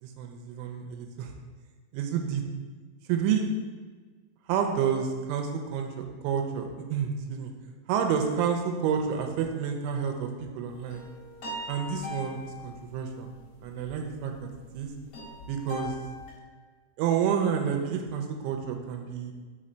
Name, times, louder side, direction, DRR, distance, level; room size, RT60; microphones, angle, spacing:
voice 1, 0.0-1.3 1.9-2.4 3.1-3.4 4.5-7.5 7.9-11.1 11.7-13.3 13.6-14.5 14.7-14.9 15.5-16.0 17.0-19.3, right 7 dB, 80° right, 4 dB, 2.9 m, -29 dB
sound 1, 10.7-16.3, left 1 dB, 60° left, 1.6 m, -41 dB
5.8 x 5.0 x 4.3 m, 1.4 s
omnidirectional pair, 5.5 m